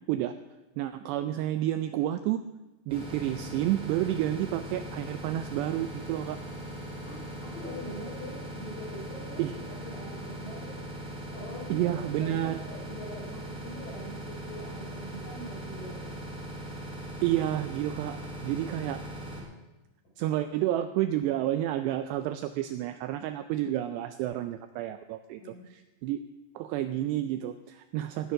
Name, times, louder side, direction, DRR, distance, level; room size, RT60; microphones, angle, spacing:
voice 1, 0.8-2.4 2.9-6.4 9.4-9.5 11.7-12.6 17.2-19.0 20.2-26.2 26.6-28.3, right 13 dB, 80° right, 10 dB, 2.5 m, -30 dB
sound 1, 2.9-19.4, right 1 dB, ahead, 3.7 m, -40 dB
voice 2, 7.0-10.9 11.3-16.2 25.4-25.7, equal, 40° left, -6 dB, 7.7 m, -43 dB
17.0 x 10.0 x 6.3 m, 1.1 s
omnidirectional pair, 5.3 m